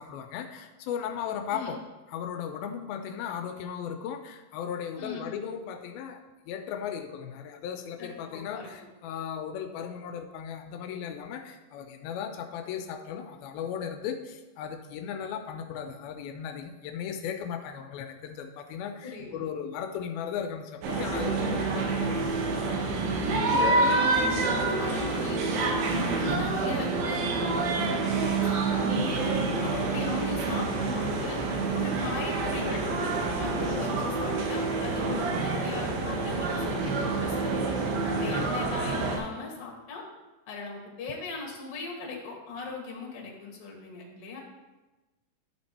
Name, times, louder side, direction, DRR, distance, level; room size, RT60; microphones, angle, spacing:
voice 1, 0.0-1.8 2.1-6.2 6.5-22.6 29.6-29.9 38.3-38.5, left 8 dB, 85° left, 5 dB, 2.4 m, -36 dB
voice 2, 5.0-5.3 8.0-8.7 19.0-19.4 24.0-29.3 29.9-31.4 31.7-37.7 38.0-40.0 40.5-44.4, left 4 dB, 50° left, -1 dB, 2.0 m, -39 dB
sound 1, 20.8-39.2, right 3 dB, 80° right, 2.7 m, -27 dB
11.0 x 4.4 x 4.2 m, 1.2 s
omnidirectional pair, 4.2 m